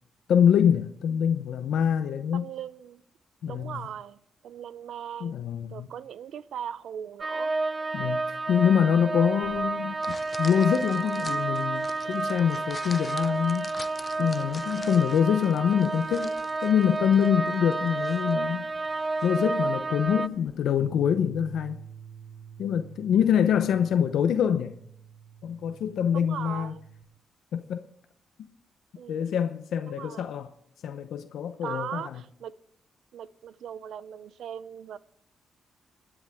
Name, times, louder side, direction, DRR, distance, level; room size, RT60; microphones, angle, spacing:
voice 1, 0.3-2.5 3.4-3.9 5.2-5.9 7.9-13.7 14.2-16.3 16.6-18.7 19.2-21.8 22.6-24.8 25.4-26.7 27.5-27.8 29.1-30.5 30.8-32.2, left 8 dB, 85° left, 0.7 m, -25 dB
voice 2, 2.3-3.0 3.5-7.5 26.1-26.8 28.9-29.3 29.9-30.3 31.6-32.6 33.1-35.0, right 9 dB, 80° right, 0.5 m, -39 dB
sound 1, 7.2-20.3, right 3 dB, 30° right, 0.5 m, -30 dB
sound 2, 9.4-20.8, left 4 dB, 30° left, 0.6 m, -47 dB
sound 3, 20.8-27.0, right 7 dB, 10° right, 1.9 m, -47 dB
27.5 x 10.0 x 3.5 m
wide cardioid pair, 140°, 0 cm